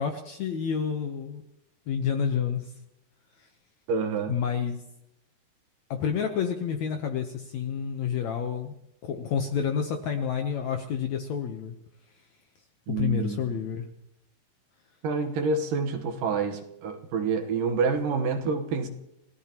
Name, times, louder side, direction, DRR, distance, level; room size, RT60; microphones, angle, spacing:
voice 1, 0.0-1.4 1.9-2.7 4.3-4.8 5.9-8.7 9.0-11.7 13.0-13.8, left 7 dB, 70° left, 1.8 m, -29 dB
voice 2, 3.9-4.4 12.9-13.4 15.0-18.9, right 4 dB, 70° right, 2.7 m, -27 dB
30.0 x 16.5 x 3.0 m
omnidirectional pair, 4.2 m